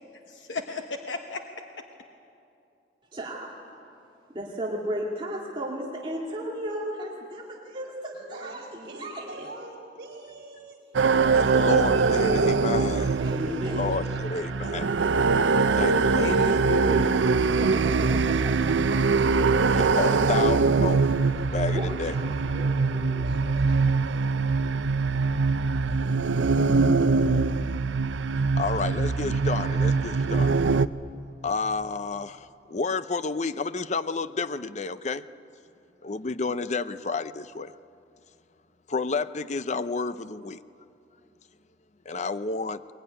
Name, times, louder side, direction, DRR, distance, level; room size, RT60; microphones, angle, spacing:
voice 1, 0.3-1.5 16.1-17.2, left 2 dB, 85° left, 1.2 m, -33 dB
voice 2, 3.1-3.6 4.3-9.5 11.6-12.4 13.2-13.9 17.5-19.3 21.6-22.3, equal, 25° right, 2.2 m, -35 dB
voice 3, 8.1-11.2 14.1-14.4 22.4-24.7, right 2 dB, 60° right, 4.6 m, -44 dB
sound 1, 10.9-30.9, right 4 dB, 85° right, 0.6 m, -23 dB
voice 4, 11.3-13.2 13.5-15.0 15.7-16.3 19.7-21.1 21.5-22.2 28.5-30.6 31.4-35.2 36.0-37.7 38.9-40.6 42.1-42.8, left 4 dB, 40° left, 0.6 m, -30 dB
22.0 x 21.0 x 10.0 m
head